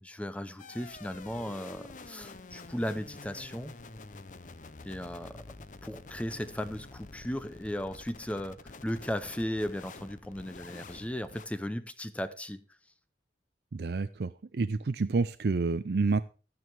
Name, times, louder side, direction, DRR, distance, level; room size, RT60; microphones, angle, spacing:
voice 1, 0.0-3.7 4.8-5.4 5.8-12.6, equal, 5° left, 0.6 m, -36 dB
sound 1, 0.6-11.5, left 3 dB, 45° left, 0.7 m, -48 dB
voice 2, 13.7-16.2, right 3 dB, 60° right, 0.5 m, -29 dB
12.5 x 9.5 x 4.6 m
head